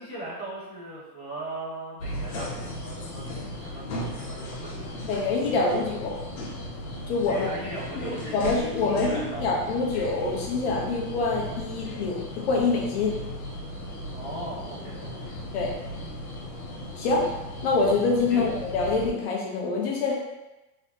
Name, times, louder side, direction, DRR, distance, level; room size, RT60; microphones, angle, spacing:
voice 1, 0.0-3.8 4.2-4.9 7.2-9.5 14.1-15.3 18.3-18.4, right 2 dB, 5° left, -21 dB, 0.3 m, -38 dB
sound 1, 2.0-19.1, left 1 dB, 60° left, 1.1 m, -36 dB
voice 2, 5.0-6.2 7.1-7.5 8.3-13.2 15.5-15.7 17.0-17.3 17.6-20.1, left 3 dB, 40° left, -2 dB, 0.7 m, -25 dB
3.6 x 3.0 x 2.7 m, 1.0 s
supercardioid pair, 170°, 50 cm